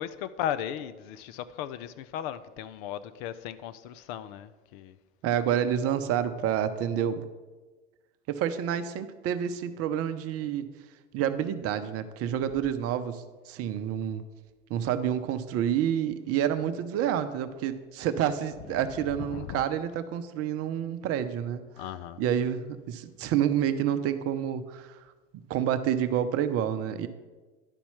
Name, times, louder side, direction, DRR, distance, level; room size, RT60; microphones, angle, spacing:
voice 1, 0.0-5.0 19.2-19.6 21.8-22.2, left 10 dB, 50° left, 0.5 m, -36 dB
voice 2, 5.2-7.2 8.3-10.7 11.1-14.2 14.7-21.7 22.2-25.0 25.5-27.1, right 9 dB, 40° right, 0.7 m, -28 dB
11.0 x 4.3 x 5.6 m
hypercardioid pair, 90°, 35 cm